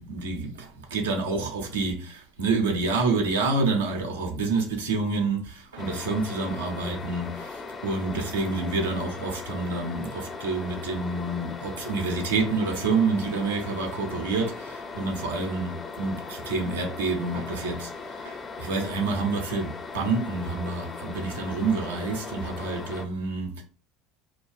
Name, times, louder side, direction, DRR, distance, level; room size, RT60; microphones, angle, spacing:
voice 1, 0.0-23.6, right 3 dB, 80° right, 0.6 m, -28 dB
sound 1, 5.8-23.1, left 4 dB, 30° left, 0.4 m, -39 dB
2.3 x 2.3 x 2.5 m
hypercardioid pair, 75°, 0 cm